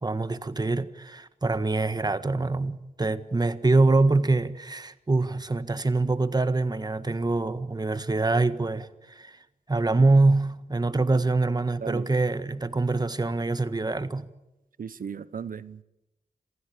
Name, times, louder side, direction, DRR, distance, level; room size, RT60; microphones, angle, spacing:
voice 1, 0.0-9.4 9.7-14.3, right 3 dB, 25° right, 1.5 m, -24 dB
voice 2, 14.8-15.8, right 7 dB, 65° right, 1.0 m, -36 dB
27.0 x 16.0 x 8.8 m
cardioid pair, 65°, 15 cm